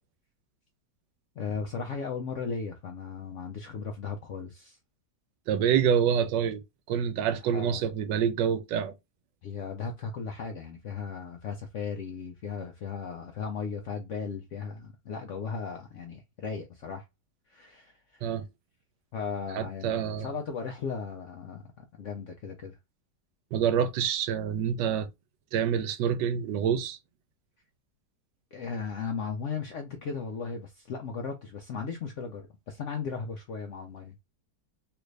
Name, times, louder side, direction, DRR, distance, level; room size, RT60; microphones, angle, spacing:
voice 1, 1.4-4.8 7.5-7.9 9.4-17.0 17.5-18.2 19.1-22.8 28.5-34.1, left 5 dB, 70° left, 0.7 m, -36 dB
voice 2, 5.5-6.6 6.9-8.9 18.2-18.4 19.5-20.3 23.5-25.1 25.5-27.0, right 8 dB, 80° right, 1.2 m, -27 dB
3.3 x 2.5 x 3.2 m
omnidirectional pair, 1.9 m